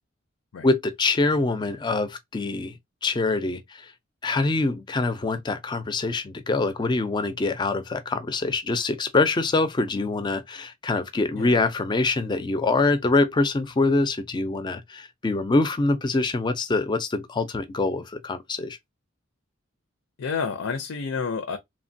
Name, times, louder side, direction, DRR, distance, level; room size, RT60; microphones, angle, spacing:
voice 1, 0.6-2.7 3.0-3.9 4.2-18.8, left 3 dB, 20° left, 0.4 m, -24 dB
voice 2, 20.2-21.6, left 5 dB, 80° left, 0.5 m, -29 dB
3.0 x 2.1 x 2.5 m
head